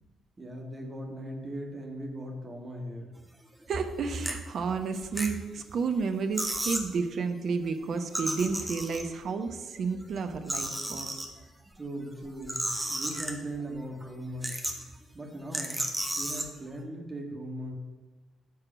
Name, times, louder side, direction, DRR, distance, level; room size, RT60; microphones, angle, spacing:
voice 1, 0.4-3.1 11.8-14.7 15.1-15.8 16.2-17.7, right 1 dB, 25° right, 0 dB, 1.9 m, -39 dB
sound 1, 3.6-3.8 4.2-4.3 4.9-5.7 6.0-6.1 6.3-6.9 8.0-9.3 9.9-11.3 12.2-13.6 14.0-14.1 14.4-14.9 15.5-16.5, right 1 dB, 10° right, 1.5 m, -33 dB
voice 2, 3.7-11.2, right 5 dB, 50° right, 7 dB, 0.9 m, -31 dB
9.5 x 4.9 x 7.2 m, 1.1 s
figure-of-eight pair, 40°, 0 cm